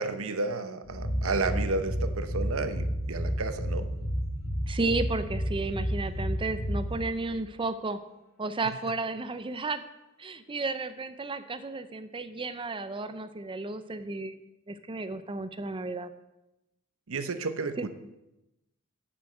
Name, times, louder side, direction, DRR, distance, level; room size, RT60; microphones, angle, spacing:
voice 1, 0.0-3.9 17.1-17.9, right 3 dB, 70° right, 10 dB, 0.9 m, -32 dB
sound 1, 0.9-7.3, equal, 70° left, 2.6 m, -31 dB
voice 2, 4.7-8.0 8.4-9.8 10.2-14.4 14.7-16.1 17.8-17.9, right 3 dB, 25° right, 11 dB, 0.6 m, -33 dB
9.4 x 7.1 x 7.7 m, 0.94 s
head